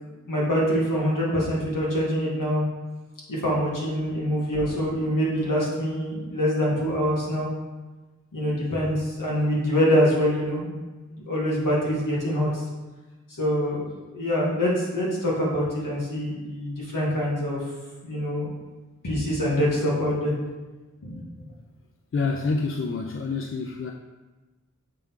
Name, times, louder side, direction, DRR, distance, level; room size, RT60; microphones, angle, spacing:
voice 1, 0.3-2.6 3.4-7.5 8.3-10.7 11.1-12.6 13.4-17.6 18.0-18.5 19.0-20.3 21.0-21.1, equal, 90° left, -5 dB, 1.9 m, -25 dB
voice 2, 22.1-23.9, left 4 dB, 45° left, 2 dB, 0.5 m, -27 dB
6.8 x 4.5 x 3.7 m, 1.2 s
wide cardioid pair, 65°, 31 cm